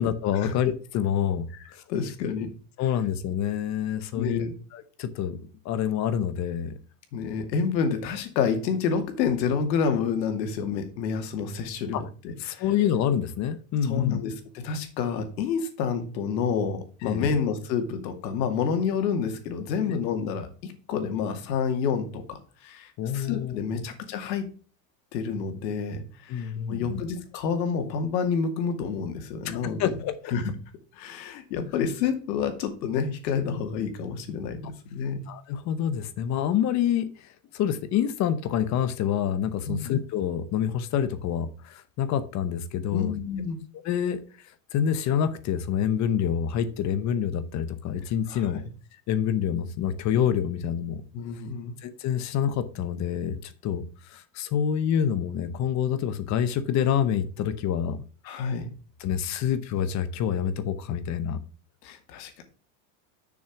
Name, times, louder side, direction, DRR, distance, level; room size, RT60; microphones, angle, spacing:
voice 1, 0.0-1.8 2.8-4.4 4.7-5.4 5.6-6.7 11.9-12.0 12.4-14.2 17.0-17.3 23.0-23.5 26.3-27.0 29.4-30.3 35.3-43.2 43.8-44.2 44.7-48.6 49.1-51.0 51.8-58.0 59.0-61.4, left 9 dB, 35° left, 12 dB, 0.9 m, -27 dB
voice 2, 1.5-2.5 4.1-4.5 7.1-12.6 13.8-24.5 25.1-29.9 30.3-30.5 30.9-35.2 39.7-39.9 42.9-43.6 48.3-48.7 51.1-51.7 58.2-58.7 61.8-62.4, left 6 dB, 80° left, 6 dB, 2.4 m, -29 dB
7.0 x 6.3 x 5.9 m, 0.39 s
supercardioid pair, 145°, 50 cm